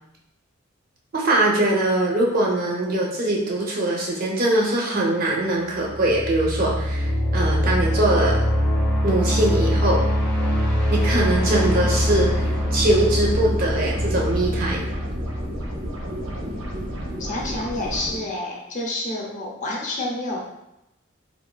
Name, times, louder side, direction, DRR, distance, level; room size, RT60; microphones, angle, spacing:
voice 1, 1.1-8.4 9.0-10.0 10.9-14.9, right 1 dB, 45° right, -3 dB, 0.6 m, -22 dB
sound 1, 5.7-16.5, equal, 5° left, 0.8 m, -23 dB
sound 2, 10.9-18.2, equal, 75° right, 0.8 m, -32 dB
voice 2, 17.2-20.4, left 2 dB, 40° left, -2 dB, 0.5 m, -29 dB
3.2 x 2.4 x 2.2 m, 0.88 s
head